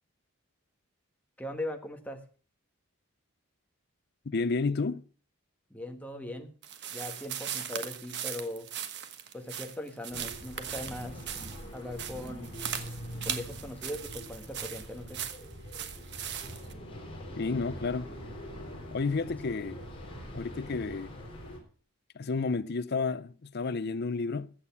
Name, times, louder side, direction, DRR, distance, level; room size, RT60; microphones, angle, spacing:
voice 1, 1.4-2.2 5.7-6.5 6.9-8.7 9.3-11.4 11.7-12.5 13.2-15.3, left 1 dB, 5° left, 1.4 m, -39 dB
voice 2, 4.3-5.0 17.4-18.1 18.9-19.8 20.3-21.1 22.1-24.5, left 4 dB, 50° left, 0.5 m, -31 dB
sound 1, 6.6-16.7, right 9 dB, 50° right, 1.2 m, -39 dB
sound 2, 10.1-21.6, equal, 25° left, 3.7 m, -44 dB
14.5 x 8.5 x 5.7 m
head